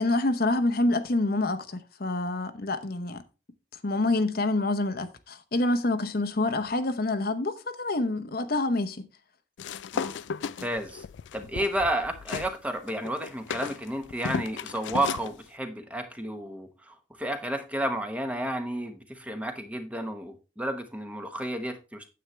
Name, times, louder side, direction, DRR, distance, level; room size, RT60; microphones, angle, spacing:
voice 1, 0.0-3.2 3.8-9.1, left 2 dB, 55° left, 0.9 m, -27 dB
sound 1, 9.6-12.5 12.9-15.3, left 6 dB, 80° left, 0.4 m, -35 dB
voice 2, 9.9-11.0 11.3-22.1, right 1 dB, 5° right, 1.0 m, -32 dB
9.3 x 8.1 x 3.2 m
head